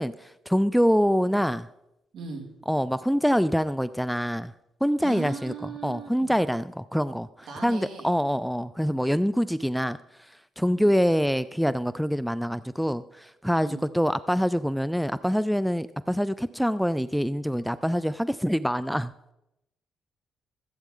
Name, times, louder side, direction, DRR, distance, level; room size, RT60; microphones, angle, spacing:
voice 1, 0.0-1.7 2.7-4.5 4.8-5.5 5.8-10.0 10.6-19.1, equal, ahead, 15 dB, 0.3 m, -25 dB
voice 2, 2.1-2.5 5.0-6.3 7.5-8.1 10.6-10.9 13.5-13.9, right 5 dB, 70° right, 3 dB, 2.2 m, -39 dB
14.5 x 8.3 x 3.8 m, 0.87 s
cardioid pair, 90°, 0 cm